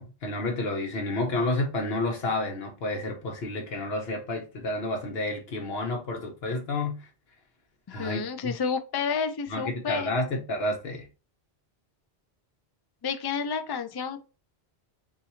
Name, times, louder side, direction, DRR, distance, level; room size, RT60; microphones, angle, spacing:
voice 1, 0.0-7.1 7.9-8.5 9.5-11.0, left 2 dB, 70° left, 1.1 m, -30 dB
voice 2, 7.9-10.1 13.0-14.2, left 6 dB, 40° left, 0.3 m, -30 dB
3.9 x 2.5 x 4.2 m
omnidirectional pair, 1.1 m